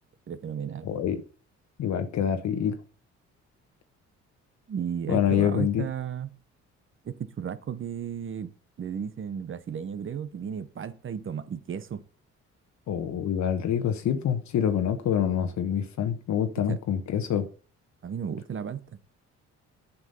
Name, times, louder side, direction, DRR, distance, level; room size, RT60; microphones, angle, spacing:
voice 1, 0.3-0.9 4.7-6.3 7.0-8.5 8.8-12.0 16.7-16.8 18.0-18.8, right 8 dB, 40° right, 0.9 m, -34 dB
voice 2, 0.8-1.2 1.8-2.8 5.1-5.9 12.9-17.5, left 9 dB, 65° left, 1.1 m, -26 dB
7.9 x 6.0 x 5.4 m
cardioid pair, 90°, 30 cm